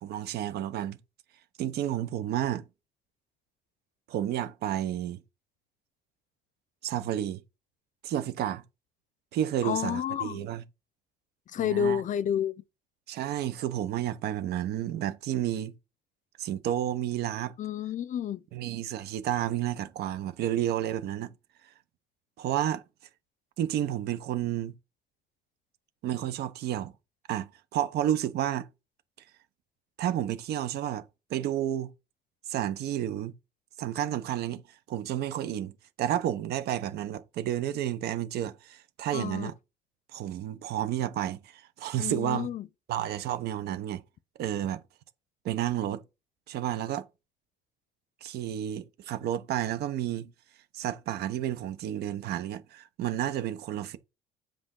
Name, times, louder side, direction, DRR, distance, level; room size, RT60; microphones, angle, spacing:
voice 1, 0.0-1.0 1.6-2.6 4.1-5.2 6.8-7.4 8.0-8.6 9.3-10.6 11.6-12.0 13.1-15.7 16.4-17.5 18.5-21.3 22.4-22.8 23.6-24.7 26.0-26.9 27.3-28.7 30.0-31.0 31.3-31.9 32.5-33.3 33.8-34.6 34.9-35.7 36.0-39.5 40.1-42.5 42.9-44.0 44.4-44.8 45.4-46.0 46.5-47.1 48.2-50.3 50.7-54.0, right 11 dB, 75° right, 0.9 m, -31 dB
voice 2, 9.6-10.4 11.5-12.5 17.6-18.4 39.1-39.5 42.0-42.7, left 9 dB, 50° left, 0.5 m, -30 dB
7.7 x 5.1 x 3.7 m
cardioid pair, 110°, 17 cm